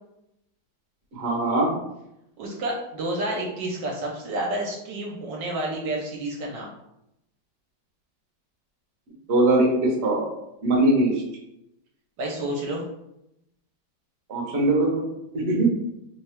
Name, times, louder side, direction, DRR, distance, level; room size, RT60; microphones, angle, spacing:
voice 1, 1.1-1.7 9.3-10.3 10.6-11.2 14.3-15.1 15.3-15.7, right 2 dB, 50° right, -1 dB, 0.8 m, -21 dB
voice 2, 2.4-6.7 12.2-12.8, right 1 dB, 70° right, -1 dB, 1.2 m, -30 dB
3.2 x 2.3 x 4.2 m, 0.84 s
omnidirectional pair, 2.2 m